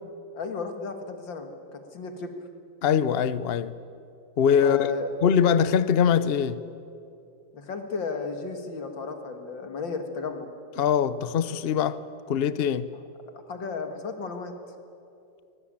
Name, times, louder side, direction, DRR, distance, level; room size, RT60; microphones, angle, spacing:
voice 1, 0.3-2.3 4.6-5.1 7.5-10.5 13.5-14.5, left 4 dB, 70° left, 2.7 m, -34 dB
voice 2, 2.8-3.7 4.4-4.9 5.2-6.6 10.8-12.9, left 8 dB, 90° left, 0.5 m, -23 dB
24.0 x 20.5 x 8.8 m
omnidirectional pair, 2.1 m